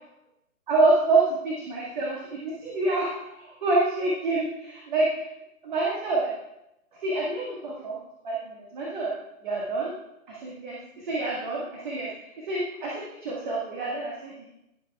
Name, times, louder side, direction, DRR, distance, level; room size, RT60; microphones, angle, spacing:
voice 1, 0.7-5.3 5.6-6.3 7.0-8.0 8.2-9.1 9.4-9.9 10.3-10.8 11.0-12.1 12.5-14.4, right 2 dB, 30° right, -3 dB, 1.6 m, -27 dB
16.0 x 6.9 x 2.3 m, 0.86 s
figure-of-eight pair, 135°, 44 cm